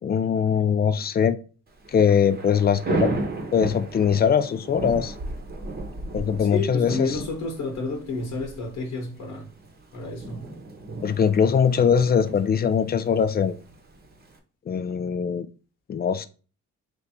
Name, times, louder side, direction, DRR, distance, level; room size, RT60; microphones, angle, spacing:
voice 1, 0.0-1.4 1.9-3.1 3.5-5.1 6.1-7.2 11.0-13.5 14.7-15.5 15.9-16.3, left 7 dB, 35° left, 0.4 m, -21 dB
Thunder / Rain, 1.7-14.4, right 3 dB, 30° right, 0.9 m, -35 dB
voice 2, 6.4-9.5 9.9-10.4, left 3 dB, 75° left, 1.2 m, -30 dB
3.4 x 2.6 x 4.2 m
cardioid pair, 90°, 30 cm